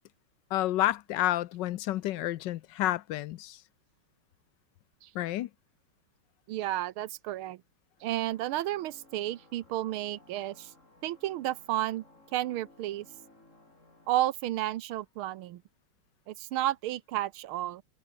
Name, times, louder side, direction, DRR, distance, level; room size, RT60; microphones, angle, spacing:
voice 1, 0.5-3.6 5.1-5.5, left 14 dB, 70° left, 1.1 m, -30 dB
voice 2, 6.5-7.6 8.0-10.7 11.0-12.0 12.3-13.1 14.1-15.6 16.3-17.8, right 14 dB, 80° right, 1.6 m, -32 dB
sound 1, 8.0-14.1, left 2 dB, 35° left, 6.6 m, -59 dB
omnidirectional pair, 2.4 m